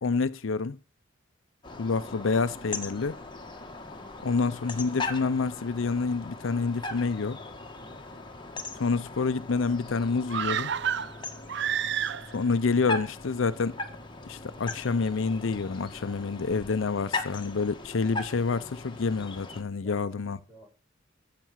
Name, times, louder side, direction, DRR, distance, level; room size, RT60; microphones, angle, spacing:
voice 1, 0.0-0.8 1.8-3.2 4.2-7.4 8.8-10.7 12.3-13.7 14.2-20.4, left 4 dB, 75° left, 0.6 m, -28 dB
sound 1, 1.6-19.6, left 3 dB, 25° left, 1.6 m, -39 dB
voice 2, 7.8-8.1 11.8-12.1 19.8-20.7, equal, 5° right, 6.2 m, -54 dB
sound 2, 10.3-12.5 12.8-12.9, right 9 dB, 60° right, 0.5 m, -30 dB
14.0 x 7.6 x 5.7 m
head